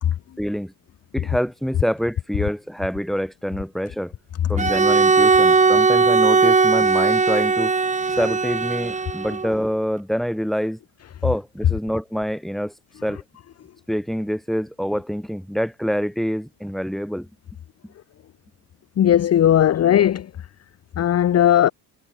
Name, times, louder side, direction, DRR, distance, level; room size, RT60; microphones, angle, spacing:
voice 1, 0.4-0.7 1.1-4.1 4.5-7.7 8.2-10.8 11.2-12.7 13.0-13.2 13.9-17.3, equal, ahead, 5.6 m, -26 dB
Bowed string instrument, 4.6-9.5, right 4 dB, 15° right, 0.8 m, -18 dB
voice 2, 19.0-20.3 21.0-21.7, left 11 dB, 30° left, 0.6 m, -17 dB
hypercardioid pair, 50°, 49 cm